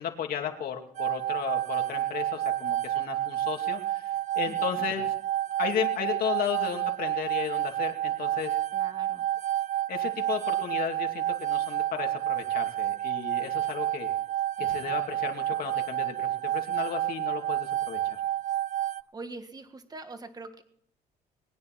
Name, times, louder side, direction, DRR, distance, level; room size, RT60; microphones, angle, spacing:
voice 1, 0.0-5.1 5.6-8.6 9.9-14.1 14.6-18.2, left 8 dB, 60° left, 4 dB, 2.5 m, -34 dB
sound 1, 1.0-19.0, right 12 dB, 45° right, 0.5 m, -30 dB
voice 2, 4.4-4.8 8.7-9.3 14.6-14.9 19.1-20.6, right 3 dB, 25° right, 8 dB, 1.6 m, -44 dB
21.5 x 9.6 x 6.1 m, 0.65 s
cardioid pair, 110°, 17 cm